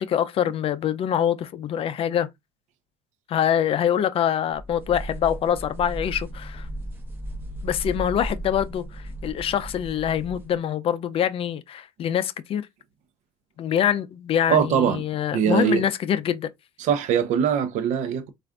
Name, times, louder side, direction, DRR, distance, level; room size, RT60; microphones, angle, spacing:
voice 1, 0.0-2.3 3.3-6.7 7.6-12.7 13.6-16.5, left 9 dB, 45° left, 0.5 m, -25 dB
sound 1, 4.6-10.6, right 1 dB, 15° right, 1.0 m, -35 dB
voice 2, 14.5-15.0 15.3-15.8 16.8-18.3, right 8 dB, 65° right, 0.7 m, -22 dB
4.3 x 2.5 x 2.4 m
supercardioid pair, 105°, 14 cm